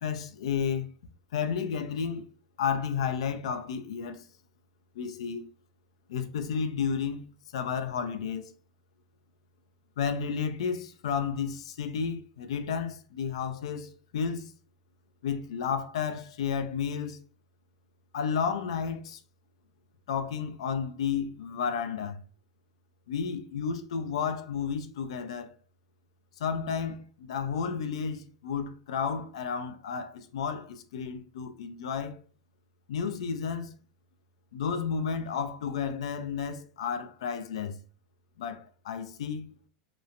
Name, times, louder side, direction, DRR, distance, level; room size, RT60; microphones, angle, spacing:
voice 1, 0.0-0.9 1.3-2.3 2.6-4.3 4.9-5.5 6.1-8.5 10.0-14.5 15.2-17.2 18.1-19.2 20.1-22.2 23.1-25.5 26.4-32.2 32.9-33.7 34.5-37.8 38.4-39.6, left 6 dB, 80° left, 0.4 m, -32 dB
2.9 x 2.1 x 2.5 m
hypercardioid pair, 105°, 3 cm